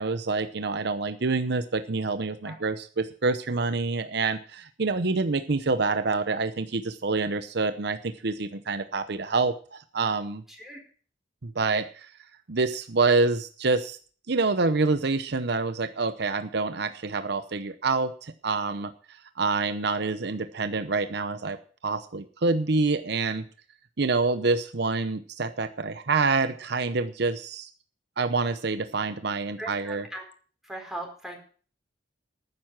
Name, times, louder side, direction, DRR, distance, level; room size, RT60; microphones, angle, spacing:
voice 1, 0.0-10.4 11.4-12.1 12.5-14.0 14.3-18.9 19.4-21.6 21.8-23.4 24.0-27.7 28.2-30.0, right 3 dB, 65° right, 11 dB, 0.8 m, -27 dB
voice 2, 10.5-10.8 29.6-30.2 30.6-31.4, right 1 dB, ahead, 1 dB, 4.2 m, -38 dB
12.0 x 9.7 x 6.1 m, 0.42 s
head